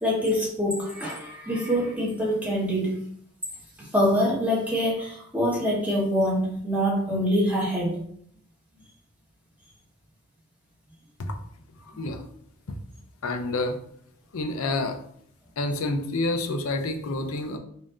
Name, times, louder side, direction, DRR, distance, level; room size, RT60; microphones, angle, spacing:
voice 1, 0.0-3.0 3.8-8.0, equal, 5° right, -5 dB, 1.1 m, -25 dB
voice 2, 11.8-12.2 13.2-13.8 14.3-15.0 15.6-17.6, left 2 dB, 80° left, 6 dB, 0.5 m, -28 dB
5.2 x 2.6 x 2.5 m, 0.64 s
head